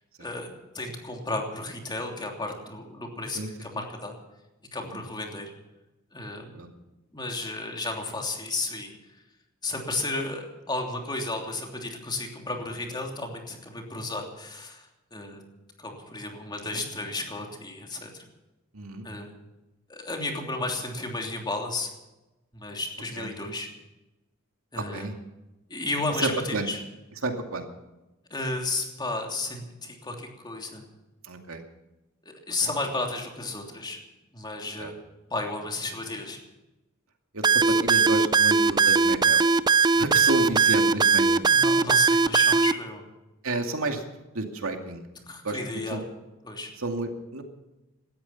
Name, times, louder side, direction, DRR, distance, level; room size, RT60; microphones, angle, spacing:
voice 1, 0.2-4.2 4.7-5.5 6.1-6.5 7.1-8.9 9.6-14.9 15.1-15.4 15.8-18.2 19.0-19.3 19.9-21.9 22.5-23.7 24.7-25.1 25.7-26.8 28.3-30.8 32.2-34.0 34.3-35.0 35.3-36.4 41.5-43.0 45.3-46.0 46.4-46.7, left 2 dB, 20° left, 2 dB, 3.1 m, -33 dB
voice 2, 18.7-19.1 23.2-23.3 24.8-25.1 26.2-26.7 27.2-27.7 31.2-31.6 32.6-32.7 34.8-34.9 37.3-39.5 39.9-41.5 43.4-44.0 44.3-45.1 45.4-46.0 46.8-47.4, right 2 dB, 85° right, 4 dB, 2.4 m, -31 dB
sound 1, 37.4-42.7, right 5 dB, 20° right, 0.5 m, -20 dB
18.5 x 13.5 x 5.8 m, 1.0 s
head